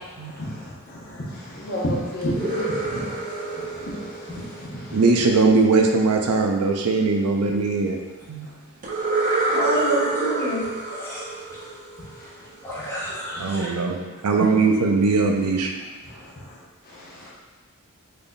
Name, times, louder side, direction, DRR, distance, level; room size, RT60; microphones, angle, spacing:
voice 1, 1.4-3.2 3.8-3.9 13.9-14.0, equal, 45° left, -6 dB, 0.8 m, -28 dB
sound 1, 2.2-5.2 8.8-12.5, right 3 dB, 35° right, 0.6 m, -27 dB
voice 2, 4.9-8.0 8.3-8.5 13.4-14.0 14.2-15.7, right 3 dB, 85° right, 3 dB, 0.5 m, -20 dB
voice 3, 9.5-11.3 12.6-13.7, right 1 dB, 10° left, -10 dB, 1.1 m, -28 dB
3.8 x 3.4 x 2.2 m, 1.2 s
head